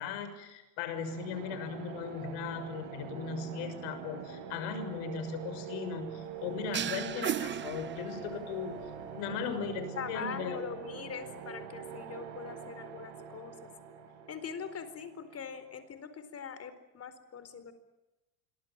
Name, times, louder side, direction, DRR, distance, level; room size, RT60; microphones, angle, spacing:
voice 1, 0.0-8.8 9.1-10.6, left 6 dB, 65° left, 10 dB, 6.5 m, -38 dB
sound 1, 1.0-15.7, right 7 dB, 65° right, 8.0 m, -45 dB
sound 2, 6.7-8.5, right 9 dB, 25° right, 0.9 m, -35 dB
voice 2, 10.0-13.6 14.3-17.7, left 7 dB, 30° left, 12 dB, 4.3 m, -42 dB
26.5 x 23.5 x 7.5 m, 1.0 s
hypercardioid pair, 100°, 45 cm